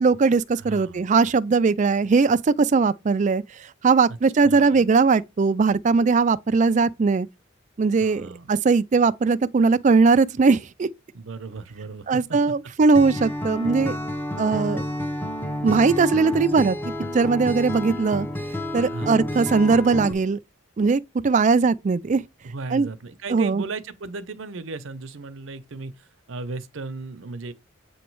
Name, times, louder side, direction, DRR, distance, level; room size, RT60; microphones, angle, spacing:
voice 1, 0.0-3.4 3.8-7.3 7.8-10.9 12.1-14.0 14.4-14.8 15.6-16.8 17.1-18.3 18.7-20.4 20.8-22.2 22.7-22.9 23.3-23.6, right 4 dB, 35° right, 0.3 m, -20 dB
voice 2, 0.6-1.1 4.1-4.2 4.4-4.8 8.0-8.5 11.1-12.4 18.9-19.2 22.4-27.5, right 3 dB, 65° right, 0.7 m, -36 dB
Acoustic guitar, 12.9-20.1, left 1 dB, 10° left, 0.6 m, -30 dB
7.8 x 3.0 x 4.6 m
head